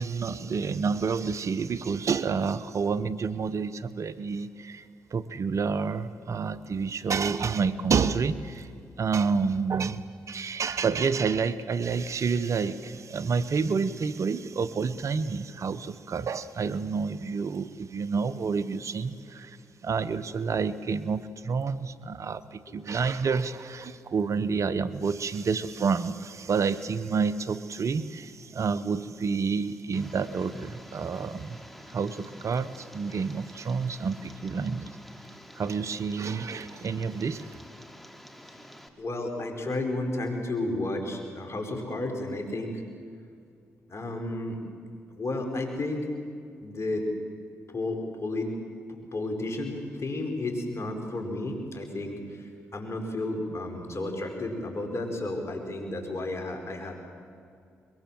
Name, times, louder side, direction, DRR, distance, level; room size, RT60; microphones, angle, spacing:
voice 1, 0.0-4.8 5.1-8.7 9.0-10.0 10.3-19.6 19.8-31.6 31.9-34.9 35.6-37.4, right 5 dB, 55° right, 14 dB, 1.0 m, -29 dB
Tick, 29.9-38.9, equal, ahead, 3.0 m, -48 dB
voice 2, 39.0-42.8 43.9-44.6 45.2-46.1 46.6-47.1 47.7-48.5 49.1-56.9, left 2 dB, 45° left, 3 dB, 5.4 m, -32 dB
22.5 x 22.0 x 7.7 m, 2.3 s
hypercardioid pair, 45°, 6 cm